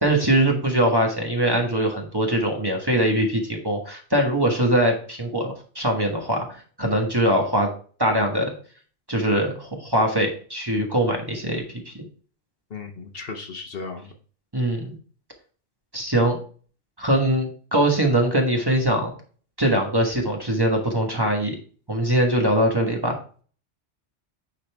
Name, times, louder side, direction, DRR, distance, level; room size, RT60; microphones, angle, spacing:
voice 1, 0.0-7.7 8.0-8.5 9.1-12.1 14.5-14.9 15.9-16.4 17.0-19.1 19.6-21.5 21.9-23.2, right 1 dB, 20° right, 1 dB, 1.3 m, -22 dB
voice 2, 12.7-14.1, left 4 dB, 55° left, 4 dB, 1.1 m, -35 dB
9.9 x 4.2 x 3.4 m, 0.42 s
omnidirectional pair, 1.2 m